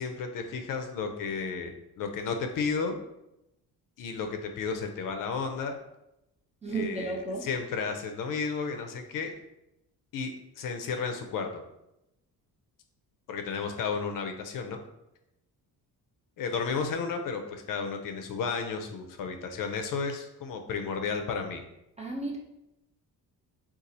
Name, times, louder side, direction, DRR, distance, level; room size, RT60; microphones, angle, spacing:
voice 1, 0.0-3.0 4.0-5.7 6.7-7.2 7.4-9.3 10.1-11.6 13.3-14.8 16.4-21.6, left 5 dB, 60° left, 5 dB, 0.5 m, -33 dB
voice 2, 6.6-7.5 22.0-22.4, right 3 dB, 20° right, -1 dB, 0.3 m, -33 dB
4.0 x 2.4 x 2.6 m, 0.88 s
cardioid pair, 130°, 38 cm